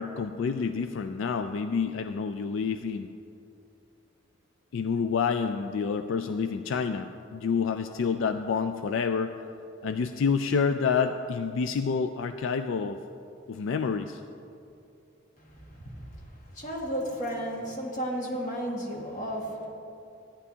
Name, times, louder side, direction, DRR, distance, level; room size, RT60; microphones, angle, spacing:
voice 1, 0.0-3.1 4.7-9.4 9.8-13.0 13.5-14.2, left 5 dB, 75° left, 9 dB, 0.3 m, -28 dB
voice 2, 15.4-19.7, equal, 40° left, -2 dB, 1.6 m, -34 dB
14.5 x 9.9 x 2.8 m, 2.6 s
head